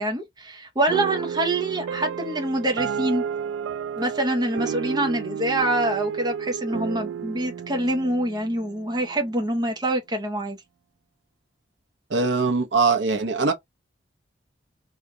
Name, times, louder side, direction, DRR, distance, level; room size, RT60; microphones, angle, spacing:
voice 1, 0.0-3.2 4.0-10.6, right 1 dB, 20° right, 0.8 m, -25 dB
sound 1, 0.9-9.4, right 7 dB, 85° right, 0.3 m, -32 dB
voice 2, 12.1-13.5, right 4 dB, 70° right, 0.8 m, -21 dB
3.1 x 2.4 x 3.7 m
head